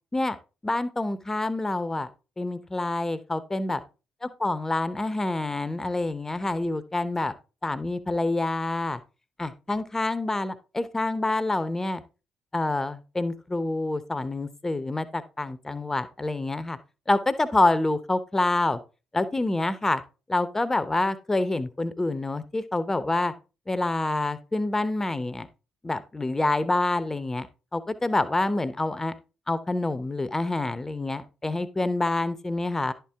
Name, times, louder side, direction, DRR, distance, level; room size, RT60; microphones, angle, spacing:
voice 1, 0.6-2.1 2.4-3.8 4.4-7.3 7.6-9.0 9.4-12.0 12.5-16.8 17.1-18.8 19.1-20.0 20.3-23.3 23.7-25.5 25.8-27.5 27.7-29.1 29.5-32.9, left 2 dB, 20° left, 14 dB, 0.8 m, -27 dB
10.5 x 4.5 x 3.5 m, 0.31 s
figure-of-eight pair, 40°, 2 cm